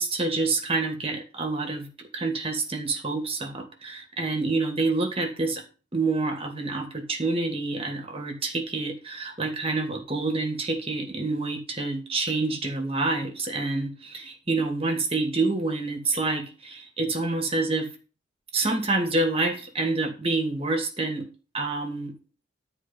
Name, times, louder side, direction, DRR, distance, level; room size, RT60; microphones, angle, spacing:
voice 1, 0.0-1.9 2.1-5.6 5.9-17.9 18.5-21.3 21.5-22.1, right 3 dB, 30° right, 4 dB, 2.7 m, -27 dB
12.5 x 4.8 x 7.5 m, 0.33 s
head